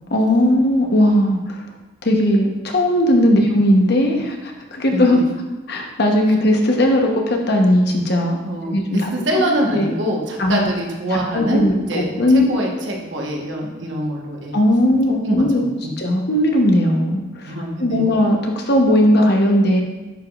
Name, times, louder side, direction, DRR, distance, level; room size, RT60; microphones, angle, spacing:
voice 1, 0.1-1.6 2.0-5.2 5.7-8.4 8.7-9.1 9.7-9.9 10.4-10.7 11.1-12.5 14.5-15.6 16.0-17.5 17.8-19.8, left 1 dB, 60° left, 2 dB, 1.0 m, -17 dB
voice 2, 4.9-5.2 8.5-12.1 12.5-14.6 15.2-15.9 17.4-18.0, equal, 75° right, -1 dB, 1.2 m, -24 dB
10.0 x 4.9 x 2.4 m, 1.1 s
head